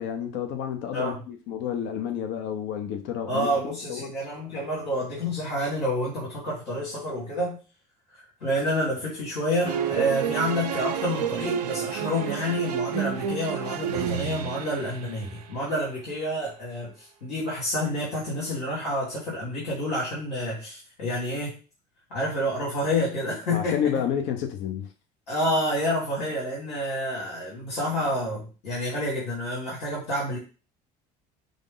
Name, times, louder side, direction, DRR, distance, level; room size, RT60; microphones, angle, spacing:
voice 1, 0.0-3.5 3.9-4.1 23.5-24.9, left 8 dB, 65° left, 0.7 m, -30 dB
voice 2, 3.3-7.6 8.4-21.5 22.1-23.8 25.3-30.4, equal, 80° left, 1.9 m, -28 dB
sound 1, 9.6-15.5, right 9 dB, 90° right, 0.5 m, -30 dB
5.1 x 2.0 x 3.7 m
hypercardioid pair, 75°, 20 cm